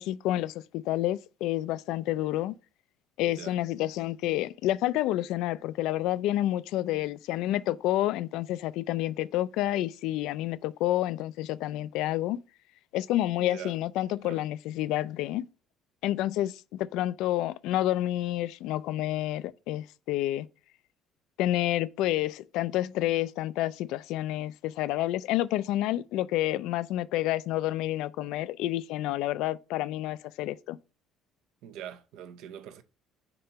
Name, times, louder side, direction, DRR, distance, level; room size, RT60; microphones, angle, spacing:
voice 1, 0.0-2.5 3.2-12.4 12.9-15.4 16.0-20.5 21.4-30.8, left 14 dB, 80° left, 0.3 m, -29 dB
voice 2, 13.4-13.7 14.2-14.4 31.6-32.8, right 10 dB, 80° right, 0.8 m, -43 dB
6.7 x 2.9 x 5.5 m
cardioid pair, 150°, 0 cm